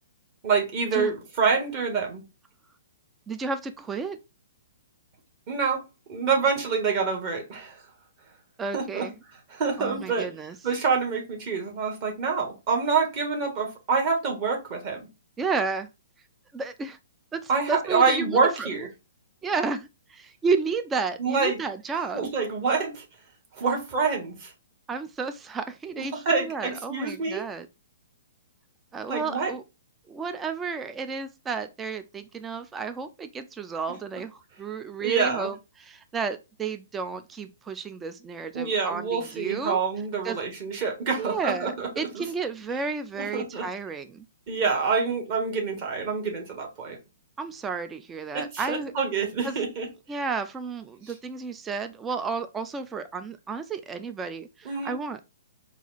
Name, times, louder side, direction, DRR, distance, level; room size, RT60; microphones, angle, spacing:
voice 1, 0.4-2.2 5.5-5.8 6.1-7.8 8.7-9.1 9.5-10.3 10.6-15.0 17.5-18.9 21.2-21.6 22.1-23.0 23.6-24.5 26.1-27.4 29.1-29.5 35.0-35.5 38.5-41.9 42.1-42.2 43.1-43.6 44.5-47.0 48.3-49.9 54.6-55.0, right 5 dB, 35° right, 1.5 m, -26 dB
voice 2, 3.3-4.2 8.6-9.1 9.8-10.6 15.4-15.9 16.5-17.0 17.3-18.7 19.4-22.3 24.9-27.7 28.9-29.6 30.1-39.8 40.2-40.4 41.2-44.2 47.4-48.9 49.4-49.6 50.1-55.2, right 4 dB, 15° right, 0.3 m, -32 dB
4.1 x 2.5 x 3.9 m
figure-of-eight pair, 120°, 0 cm